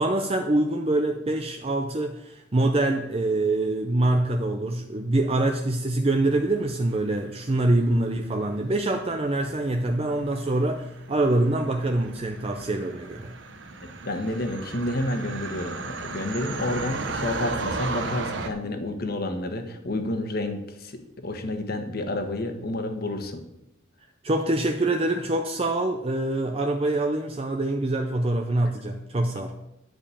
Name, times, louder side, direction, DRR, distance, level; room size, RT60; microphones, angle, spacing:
voice 1, 0.0-13.4 24.2-29.5, right 2 dB, 30° right, 4 dB, 0.6 m, -25 dB
sound 1, 6.0-18.5, right 3 dB, 60° right, 1.1 m, -36 dB
voice 2, 14.0-23.4 29.4-29.5, left 1 dB, 50° left, 6 dB, 1.4 m, -30 dB
11.0 x 5.2 x 8.5 m, 0.88 s
head